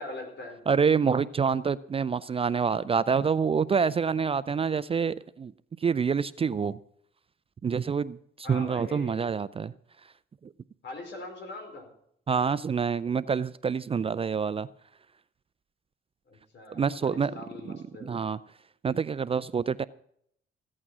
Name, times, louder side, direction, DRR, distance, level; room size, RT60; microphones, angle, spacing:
voice 1, 0.0-0.6 8.4-9.2 10.8-11.9 16.3-18.2, left 2 dB, 65° left, 4.6 m, -42 dB
voice 2, 0.7-5.5 5.8-6.8 7.6-9.7 10.4-10.5 12.3-14.7 16.7-17.3 17.7-18.4 18.8-19.8, right 6 dB, 30° right, 0.4 m, -27 dB
15.5 x 8.7 x 6.1 m
cardioid pair, 90°, 20 cm